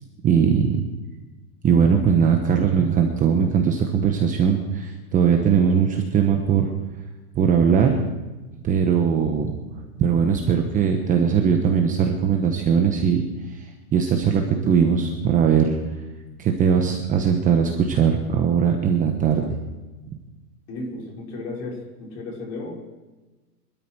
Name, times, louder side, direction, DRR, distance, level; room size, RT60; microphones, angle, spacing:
voice 1, 0.2-0.8 1.6-6.7 7.3-8.0 8.6-9.6 10.0-13.2 13.5-13.6 13.9-15.8 16.4-19.4, right 7 dB, 15° right, 3 dB, 1.0 m, -20 dB
voice 2, 20.7-22.7, left 2 dB, 35° left, -1 dB, 5.5 m, -34 dB
25.0 x 12.5 x 4.7 m, 1.2 s
supercardioid pair, 155°, 47 cm